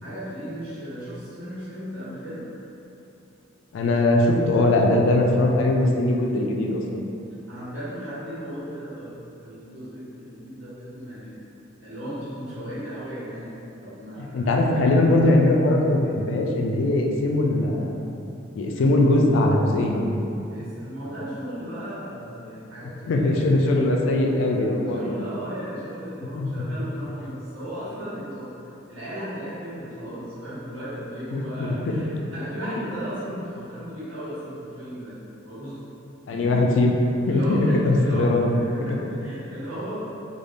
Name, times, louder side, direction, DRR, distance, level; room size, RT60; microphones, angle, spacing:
voice 1, 0.0-2.4 7.5-9.1 9.4-11.4 11.8-14.6 18.7-19.0 20.5-23.8 24.6-24.7 24.9-28.5 28.9-32.1 32.3-35.1 35.4-35.8 36.3-36.5 36.8-36.9 37.2-40.0, equal, 75° right, -12 dB, 1.2 m, -36 dB
voice 2, 3.7-7.0 14.3-18.0 18.5-20.1 23.1-25.2 26.3-26.5 31.3-32.0 36.3-36.9 37.3-38.5, left 2 dB, 65° left, 1 dB, 0.3 m, -21 dB
3.3 x 2.0 x 2.5 m, 2.8 s
head